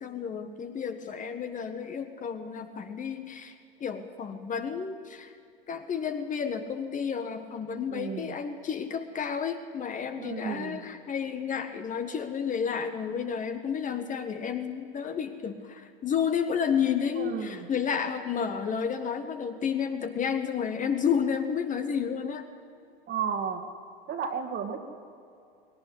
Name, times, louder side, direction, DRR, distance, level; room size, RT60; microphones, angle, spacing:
voice 1, 0.0-3.5 3.8-5.3 5.7-22.4, left 7 dB, 25° left, 6 dB, 1.6 m, -31 dB
voice 2, 7.9-8.4 10.2-10.8 17.2-17.7 23.1-23.6 24.1-24.8, right 7 dB, 35° right, 5 dB, 2.4 m, -33 dB
19.5 x 18.0 x 9.9 m, 2.5 s
hypercardioid pair, 90°, 29 cm